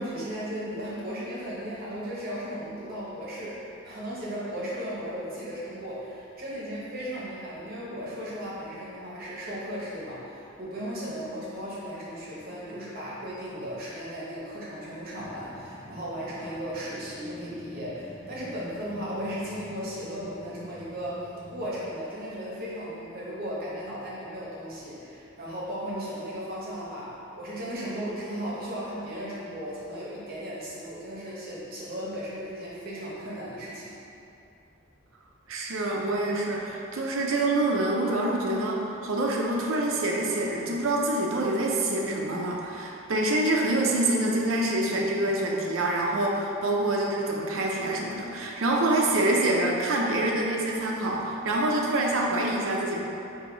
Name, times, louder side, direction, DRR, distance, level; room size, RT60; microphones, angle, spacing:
voice 1, 0.0-34.0, equal, 50° right, -7 dB, 0.9 m, -36 dB
sound 1, 15.2-21.9, left 1 dB, 15° left, 0.7 m, -47 dB
voice 2, 35.5-53.0, right 1 dB, 80° right, -1 dB, 0.5 m, -26 dB
4.7 x 2.8 x 3.9 m, 2.8 s
head